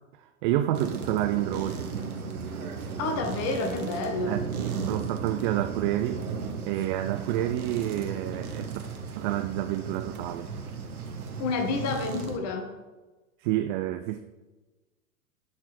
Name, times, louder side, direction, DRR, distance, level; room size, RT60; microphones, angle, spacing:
voice 1, 0.2-1.9 4.3-6.2 6.6-8.7 9.2-10.5 13.4-14.2, right 13 dB, 40° right, 0.4 m, -29 dB
sound 1, 0.7-12.4, right 5 dB, 90° right, 1.3 m, -35 dB
voice 2, 3.0-4.4 11.4-12.7, left 3 dB, 40° left, 1.5 m, -29 dB
11.0 x 4.4 x 4.4 m
hypercardioid pair, 105°, 43 cm